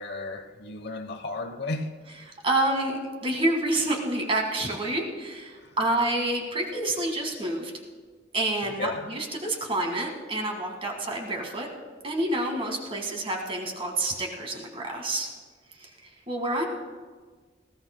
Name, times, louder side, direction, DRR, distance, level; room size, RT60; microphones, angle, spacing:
voice 1, 0.0-1.9 5.6-5.8 8.6-9.1, left 2 dB, 65° left, 7 dB, 1.0 m, -34 dB
voice 2, 2.4-7.7 8.3-11.7 12.0-15.3 15.8-15.9 16.3-16.6, right 1 dB, 30° right, 2 dB, 1.9 m, -28 dB
19.5 x 16.0 x 2.2 m, 1.5 s
head